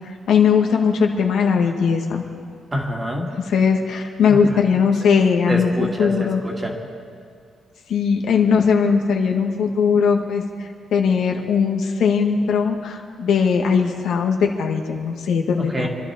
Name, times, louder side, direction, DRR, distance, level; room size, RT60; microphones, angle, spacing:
voice 1, 0.3-2.2 3.5-6.4 7.9-10.4 10.9-15.9, left 6 dB, 75° left, 2 dB, 1.6 m, -19 dB
voice 2, 2.7-3.3 4.3-4.8 5.5-6.8 15.6-15.9, equal, 15° right, 1 dB, 1.7 m, -27 dB
26.0 x 12.5 x 4.3 m, 2.2 s
wide cardioid pair, 175°, 0 cm